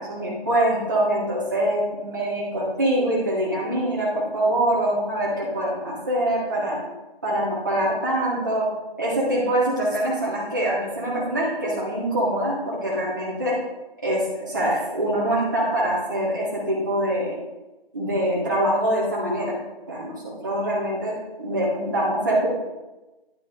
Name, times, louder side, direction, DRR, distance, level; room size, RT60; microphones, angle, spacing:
voice 1, 0.0-6.8 7.2-8.7 9.0-13.5 14.0-17.3 17.9-19.5 19.9-21.1 21.4-22.5, right 1 dB, 20° right, -7 dB, 1.3 m, -24 dB
10.5 x 5.7 x 3.3 m, 1.1 s
figure-of-eight pair, 165°, 31 cm